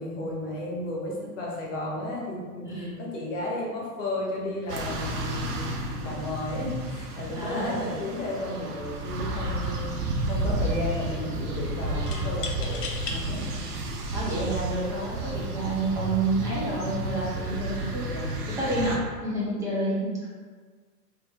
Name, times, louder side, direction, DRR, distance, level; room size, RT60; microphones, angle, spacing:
voice 1, 0.0-5.7 6.0-9.9 10.3-13.4 18.1-18.4, left 1 dB, 50° left, -3 dB, 1.0 m, -33 dB
voice 2, 2.7-3.0 7.3-7.9 13.4-13.6 14.1-18.0 18.5-20.2, right 2 dB, 5° right, -7 dB, 0.4 m, -29 dB
sound 1, 4.7-19.0, right 1 dB, 75° right, 0.7 m, -32 dB
sound 2, 8.9-9.2 9.5-10.1 12.1-13.2 13.9-14.0 14.9-15.2, left 4 dB, 75° left, 0.7 m, -37 dB
3.0 x 2.7 x 3.4 m, 1.5 s
figure-of-eight pair, 100°, 48 cm